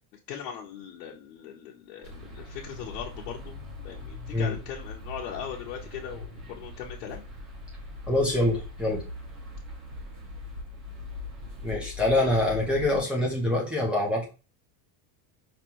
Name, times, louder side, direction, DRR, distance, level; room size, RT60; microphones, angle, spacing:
voice 1, 0.3-3.5 3.8-7.2, left 8 dB, 85° left, -2 dB, 1.1 m, -39 dB
sound 1, 2.0-13.0, left 2 dB, 30° right, 1.8 m, -41 dB
voice 2, 8.1-9.0 11.6-14.3, left 1 dB, ahead, -2 dB, 0.9 m, -25 dB
5.3 x 3.3 x 3.0 m, 0.31 s
cardioid pair, 180°, 48 cm